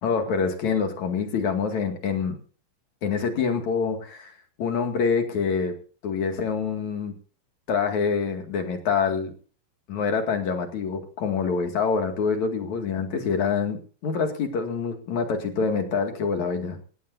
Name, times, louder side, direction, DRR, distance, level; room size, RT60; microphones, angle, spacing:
voice 1, 0.0-2.4 3.0-4.3 4.6-5.8 6.0-7.1 7.7-9.3 9.9-13.8 14.0-16.8, left 5 dB, 55° left, 5 dB, 3.3 m, -26 dB
17.5 x 17.5 x 2.7 m, 0.40 s
omnidirectional pair, 4.2 m